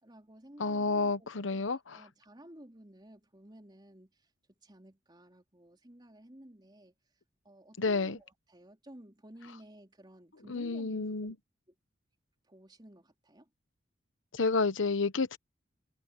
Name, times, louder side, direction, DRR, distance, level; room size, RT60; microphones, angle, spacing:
voice 1, 0.0-11.3 11.7-11.8 12.4-13.5, right 1 dB, 20° right, 3.7 m, -54 dB
voice 2, 0.6-1.8 7.8-8.2 10.5-11.3 14.3-15.4, left 3 dB, 75° left, 1.0 m, -30 dB
head